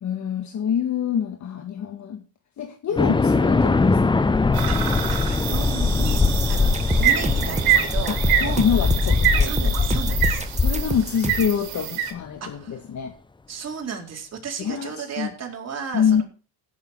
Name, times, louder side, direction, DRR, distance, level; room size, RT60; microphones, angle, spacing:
voice 1, 0.0-2.2 2.6-4.2 8.1-9.7 10.6-13.1 14.6-15.3 15.9-16.2, left 8 dB, 50° left, 1.7 m, -26 dB
sound 1, 3.0-11.5, left 4 dB, 15° left, 0.7 m, -21 dB
sound 2, 4.5-12.1, right 10 dB, 75° right, 2.8 m, -26 dB
voice 2, 4.6-6.2 6.5-6.7 7.0-8.6 9.0-10.5 12.4-12.8 13.5-16.2, right 6 dB, 40° right, 4.5 m, -34 dB
sound 3, 6.2-11.6, right 3 dB, 20° right, 1.6 m, -30 dB
16.0 x 7.2 x 4.7 m
supercardioid pair, 85°, 37 cm